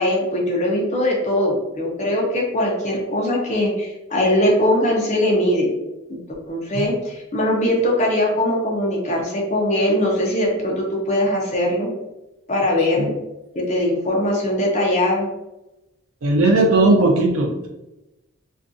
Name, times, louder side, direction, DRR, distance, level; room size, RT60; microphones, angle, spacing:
voice 1, 0.0-5.7 6.1-6.2 6.5-11.9 12.5-13.1 13.5-15.3, left 1 dB, 30° left, -2 dB, 0.5 m, -21 dB
voice 2, 16.2-17.7, right 2 dB, 80° right, 0 dB, 0.6 m, -17 dB
2.5 x 2.3 x 2.5 m, 0.97 s
head